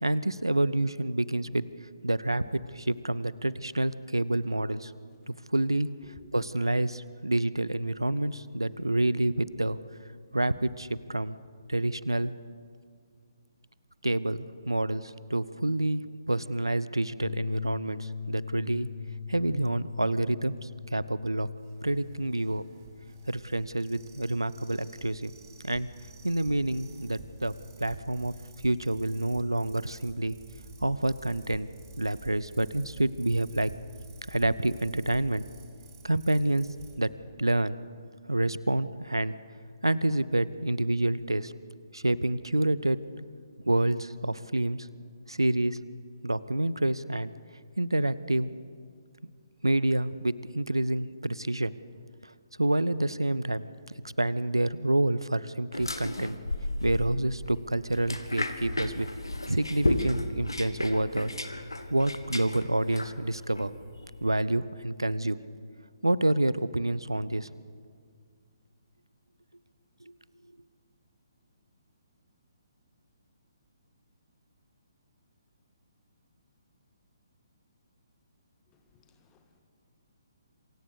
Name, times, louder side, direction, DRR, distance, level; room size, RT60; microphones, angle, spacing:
voice 1, 0.0-1.6 2.0-4.9 5.3-5.9 6.3-9.8 10.3-11.4 11.7-12.3 14.0-18.9 19.3-21.5 21.8-22.6 23.3-25.3 25.6-25.9 26.2-28.3 28.6-30.4 30.8-31.7 32.0-33.7 34.3-35.4 36.0-36.7 37.0-37.1 37.4-37.8 38.3-39.3 39.8-41.5 41.9-43.0 43.6-44.9 45.3-45.8 46.2-47.3 47.8-48.5 49.6-51.7 52.2-52.3 52.6-53.6 54.2-56.4 56.8-59.1 59.5-61.3 61.9-63.7 64.2-65.4 66.0-67.5, right 1 dB, 85° right, 17 dB, 0.7 m, -28 dB
sound 1, 17.2-23.8, left 6 dB, 55° left, 0.5 m, -41 dB
sound 2, 21.6-36.9, right 3 dB, 40° right, 4.6 m, -50 dB
sound 3, 55.7-64.4, left 1 dB, 80° left, 1.6 m, -34 dB
voice 2, 78.7-79.6, left 7 dB, 20° left, 6 dB, 1.6 m, -58 dB
26.5 x 17.5 x 6.7 m, 2.1 s
figure-of-eight pair, 135°, 2 cm